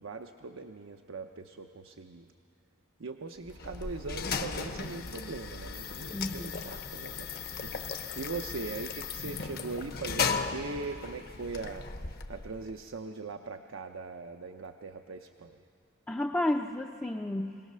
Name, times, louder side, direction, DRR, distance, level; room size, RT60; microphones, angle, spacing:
voice 1, 0.0-2.3 3.0-15.6, right 3 dB, 75° right, 5 dB, 0.7 m, -41 dB
sound 1, 3.4-12.8, left 5 dB, 50° left, 0.9 m, -36 dB
voice 2, 6.1-6.6 16.1-17.6, left 1 dB, 10° left, 1 dB, 0.5 m, -32 dB
21.5 x 18.0 x 6.7 m, 2.5 s
head